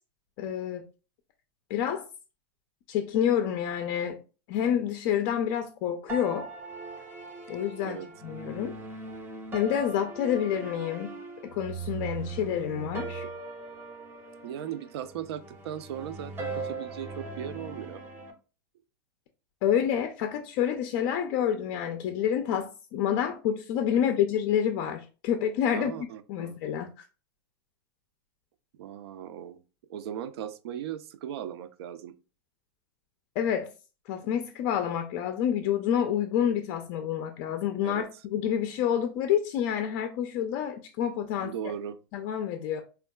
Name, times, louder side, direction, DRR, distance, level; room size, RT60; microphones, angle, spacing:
voice 1, 0.4-0.8 1.7-2.1 2.9-4.2 4.5-6.5 7.5-8.8 9.5-11.2 11.4-13.2 19.6-25.9 26.3-27.0 33.4-33.7 34.1-41.5 42.1-42.8, left 9 dB, 45° left, 0.3 m, -28 dB
sound 1, 6.1-18.3, right 3 dB, 15° right, 0.5 m, -40 dB
voice 2, 14.4-18.0 23.9-24.0 25.7-26.6 28.8-29.6 29.9-32.1 37.8-38.1 41.4-42.0, right 9 dB, 80° right, 0.4 m, -38 dB
3.5 x 2.3 x 2.2 m
supercardioid pair, 150°, 13 cm